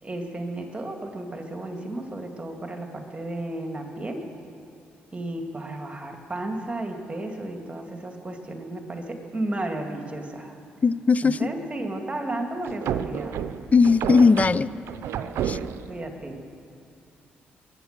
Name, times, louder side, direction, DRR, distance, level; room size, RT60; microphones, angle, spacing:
voice 1, 0.0-4.2 5.1-10.6 11.2-13.3 15.9-16.6, right 1 dB, 25° right, 3 dB, 2.3 m, -33 dB
voice 2, 10.8-11.5 13.7-14.7 15.4-15.6, left 4 dB, 35° left, 18 dB, 0.5 m, -18 dB
sound 1, 12.6-16.0, right 9 dB, 75° right, 0.6 m, -30 dB
22.0 x 8.9 x 6.7 m, 2.7 s
supercardioid pair, 60°, 4 cm